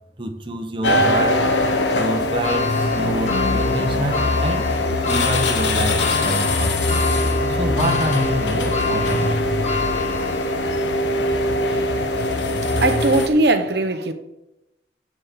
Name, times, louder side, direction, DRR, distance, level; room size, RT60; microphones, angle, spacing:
voice 1, 0.2-1.4 2.0-4.7 5.0-7.0 7.5-9.4, right 1 dB, 25° right, 0.9 m, -27 dB
sound 1, 0.8-13.3, left 1 dB, 80° left, 1.1 m, -21 dB
sound 2, 2.4-10.8 11.3-11.4 12.5-12.6, left 5 dB, 40° left, 1.3 m, -28 dB
voice 2, 11.6-12.3 12.8-14.1, right 2 dB, 60° right, 0.9 m, -21 dB
7.8 x 7.5 x 6.6 m
head